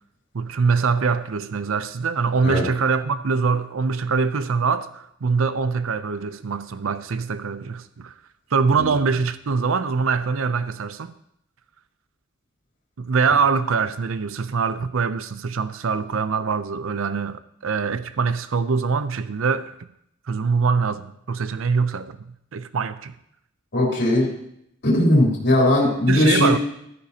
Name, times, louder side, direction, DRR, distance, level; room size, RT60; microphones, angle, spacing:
voice 1, 0.3-8.1 8.5-11.1 13.0-19.7 20.3-22.2 22.5-23.1 26.1-26.6, right 5 dB, 80° right, 0.6 m, -23 dB
voice 2, 23.7-24.3 24.8-26.5, left 1 dB, 55° left, 3.7 m, -18 dB
15.0 x 13.0 x 2.8 m
head